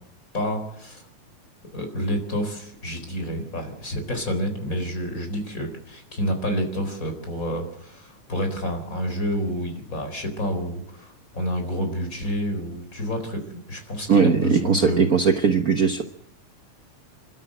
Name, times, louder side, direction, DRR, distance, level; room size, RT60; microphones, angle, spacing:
voice 1, 0.3-1.0 1.7-15.1, equal, 25° left, 5 dB, 4.3 m, -29 dB
voice 2, 14.1-16.0, right 6 dB, 70° right, 5 dB, 0.8 m, -19 dB
28.5 x 12.5 x 7.8 m, 0.72 s
omnidirectional pair, 3.4 m